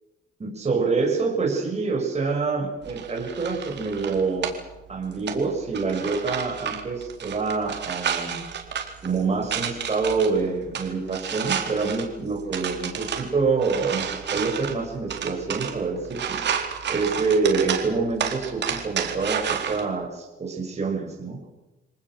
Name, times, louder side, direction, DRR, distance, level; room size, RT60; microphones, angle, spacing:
voice 1, 0.4-4.5 4.9-8.4 9.0-16.4 16.9-21.5, right 4 dB, 35° right, -1 dB, 6.7 m, -26 dB
sound 1, 2.8-19.8, right 8 dB, 60° right, 4.2 m, -32 dB
27.5 x 19.5 x 7.8 m, 1.0 s
cardioid pair, 90°, 20 cm